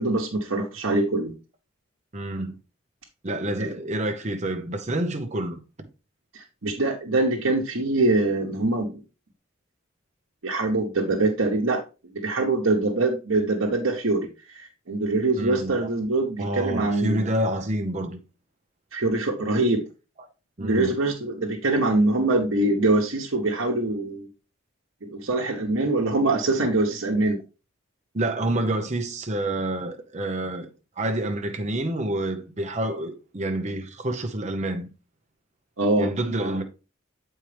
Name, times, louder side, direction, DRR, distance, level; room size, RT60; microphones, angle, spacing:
voice 1, 0.0-1.3 3.6-3.7 6.3-9.0 10.4-11.8 12.2-14.3 14.5-17.3 18.9-19.8 20.6-24.3 25.0-27.4 35.8-36.1, right 2 dB, 85° right, 1.1 m, -23 dB
voice 2, 2.1-2.5 3.2-5.6 15.4-15.9 16.4-18.2 20.6-20.9 28.1-30.7 31.0-34.9 36.0-36.6, right 1 dB, 35° right, 0.9 m, -28 dB
7.8 x 4.5 x 3.4 m
head